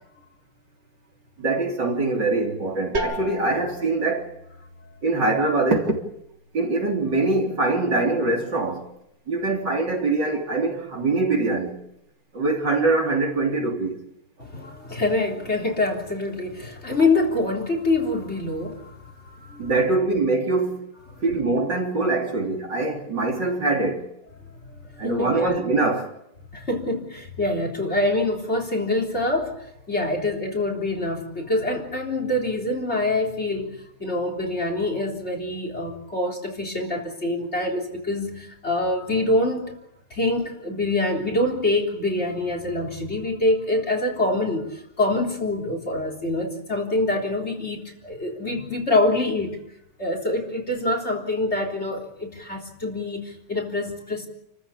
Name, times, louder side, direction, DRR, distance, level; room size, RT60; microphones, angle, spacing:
voice 1, 1.4-4.3 5.0-6.0 6.5-8.9 9.3-11.8 12.3-14.0 19.6-20.9 21.2-24.0 25.0-26.1, right 3 dB, 55° right, 4.2 m, -23 dB
sound 1, 2.9-8.5, right 1 dB, 30° right, 3.2 m, -37 dB
voice 2, 14.4-19.0 19.2-19.7 21.1-21.2 24.7-25.6 26.5-39.7 40.1-49.6 50.0-54.3, left 2 dB, 30° left, 4.0 m, -25 dB
29.5 x 15.0 x 8.4 m
omnidirectional pair, 2.3 m